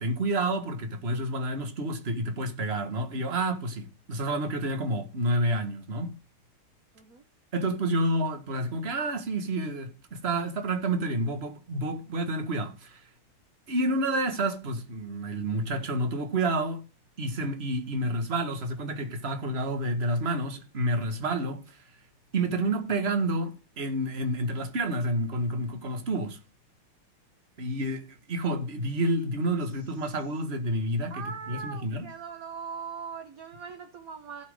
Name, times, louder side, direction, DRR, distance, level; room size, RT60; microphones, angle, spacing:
voice 1, 0.0-6.1 7.5-13.0 13.7-16.8 17.2-21.8 22.3-26.4 27.6-31.2 31.5-32.1, right 1 dB, 30° right, 1.7 m, -29 dB
voice 2, 29.6-30.2 31.1-34.4, right 6 dB, 50° right, 1.4 m, -41 dB
16.0 x 5.9 x 3.7 m
omnidirectional pair, 2.4 m